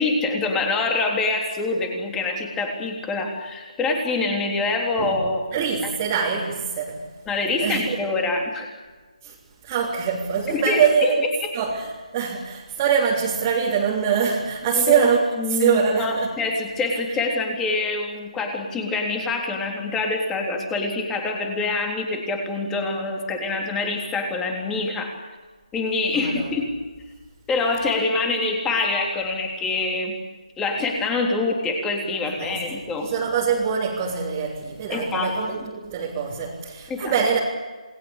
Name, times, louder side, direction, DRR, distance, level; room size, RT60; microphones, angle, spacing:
voice 1, 0.0-5.4 7.3-8.7 10.5-11.1 14.7-15.1 15.4-25.1 25.7-26.7 27.5-30.1 30.6-33.1 34.9-35.3 36.9-37.2, left 3 dB, 10° left, 2 dB, 3.6 m, -25 dB
voice 2, 5.0-7.0 7.6-8.0 9.2-9.4 9.6-11.2 11.5-11.9 12.1-15.2 15.5-16.4 26.1-26.5 32.3-32.6 33.0-37.4, right 7 dB, 20° right, -4 dB, 3.5 m, -23 dB
28.5 x 21.0 x 8.4 m, 1.4 s
figure-of-eight pair, 160°, 4 cm